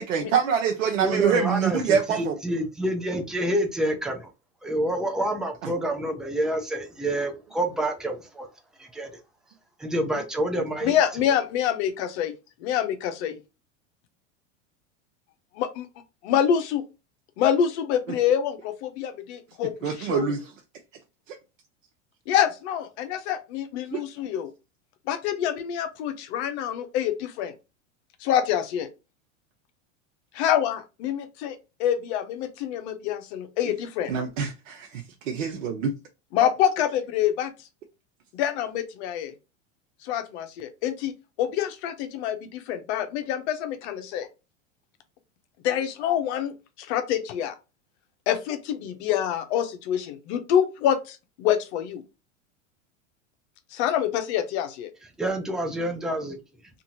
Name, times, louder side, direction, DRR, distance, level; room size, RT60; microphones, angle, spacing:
voice 1, 0.0-2.4 19.8-20.4 23.9-24.0 34.1-35.9, right 7 dB, 85° right, 0.6 m, -25 dB
voice 2, 1.0-4.3 4.6-8.5 8.8-9.2 9.8-11.0 55.2-56.4, right 1 dB, ahead, 0.4 m, -28 dB
voice 3, 10.8-12.3 12.6-13.4 15.6-15.9 16.2-16.8 17.4-20.3 22.3-24.5 25.1-27.5 28.2-28.9 30.3-34.1 36.3-37.5 38.3-39.3 40.0-41.1 41.4-44.3 45.6-46.5 46.8-47.5 48.3-52.0 53.7-54.9, left 9 dB, 60° left, 0.7 m, -26 dB
2.7 x 2.5 x 2.7 m
hypercardioid pair, 105°, 38 cm